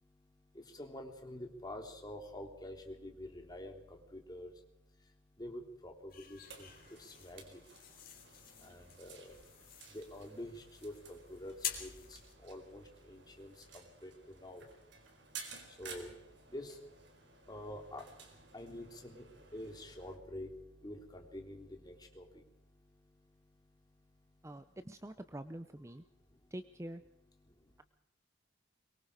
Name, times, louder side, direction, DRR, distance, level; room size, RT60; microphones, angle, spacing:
voice 1, 0.0-24.8 26.1-26.5 27.4-27.8, left 1 dB, 20° left, 3 dB, 3.4 m, -49 dB
sound 1, 6.1-12.3, left 9 dB, 50° left, 3.9 m, -48 dB
sound 2, 6.4-20.2, right 5 dB, 65° right, 4.2 m, -55 dB
voice 2, 24.4-26.0 26.5-27.0, right 1 dB, 15° right, 10 dB, 0.7 m, -46 dB
23.5 x 22.5 x 5.0 m, 0.80 s
head